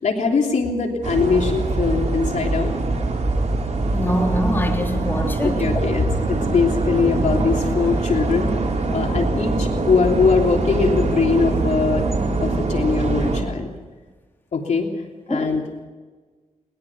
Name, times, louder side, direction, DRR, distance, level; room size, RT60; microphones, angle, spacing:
voice 1, 0.0-2.8 5.4-8.6 8.9-12.1 12.4-13.7 14.5-14.9 15.3-15.8, left 5 dB, 65° left, 2 dB, 3.2 m, -21 dB
sound 1, 1.0-13.4, right 3 dB, 60° right, 4.4 m, -23 dB
sound 2, 2.0-12.8, equal, 25° right, 5.6 m, -34 dB
voice 2, 3.9-5.7 15.3-15.5, equal, 15° left, 2 dB, 3.2 m, -24 dB
21.0 x 21.0 x 6.0 m, 1.3 s
cardioid pair, 85°, 13 cm